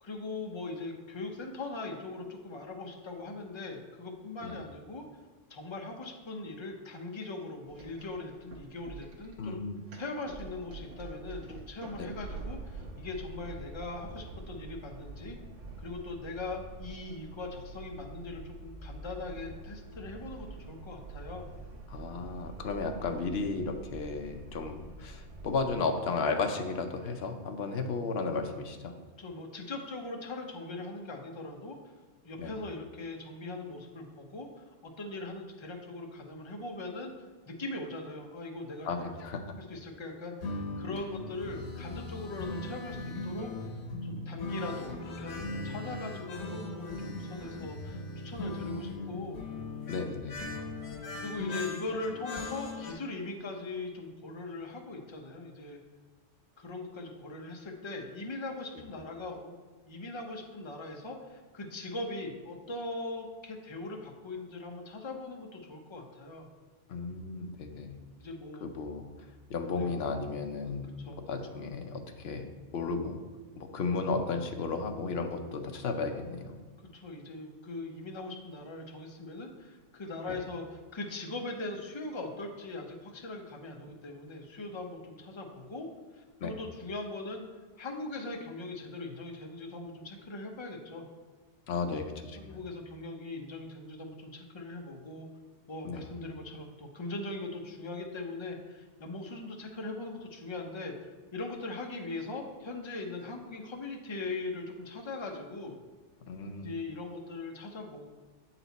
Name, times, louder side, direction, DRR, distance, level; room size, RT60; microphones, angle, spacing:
voice 1, 0.0-5.1 5.5-9.6 9.9-15.4 15.8-21.5 29.2-31.8 32.2-37.1 37.5-39.2 39.7-43.5 44.0-49.4 51.1-55.8 56.6-59.5 59.8-66.5 68.2-68.6 69.8-69.9 70.8-71.2 76.9-85.9 86.1-87.4 87.8-91.1 91.9-92.1 92.4-95.3 95.7-100.9 101.3-105.8 106.6-108.1, left 2 dB, 30° left, 2 dB, 0.6 m, -40 dB
sound 1, 7.7-25.8, right 3 dB, 85° right, 1.3 m, -46 dB
voice 2, 9.4-9.8 12.0-12.1 21.9-28.9 32.4-32.5 38.8-39.4 48.5-49.2 49.9-50.4 66.9-68.0 68.6-69.0 69.5-72.4 72.7-73.2 73.6-76.5 86.4-86.6 91.7-92.6 95.8-96.1 106.3-106.7, left 4 dB, 65° left, 5 dB, 0.9 m, -34 dB
sound 2, 40.4-52.9, left 2 dB, 85° left, 1.3 m, -39 dB
8.0 x 4.3 x 4.0 m, 1.3 s
omnidirectional pair, 1.2 m